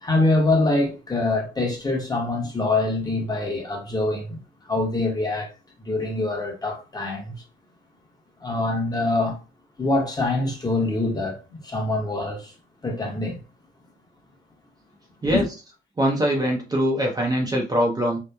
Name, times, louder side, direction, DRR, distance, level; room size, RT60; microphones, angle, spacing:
voice 1, 0.0-4.4 4.7-5.5 5.9-7.4 8.4-9.4 9.8-12.5 12.8-13.4 15.2-15.4, left 2 dB, 20° left, 0.9 m, -24 dB
voice 2, 16.0-18.2, equal, 20° right, 0.6 m, -22 dB
2.9 x 2.1 x 2.2 m
cardioid pair, 90°, 20 cm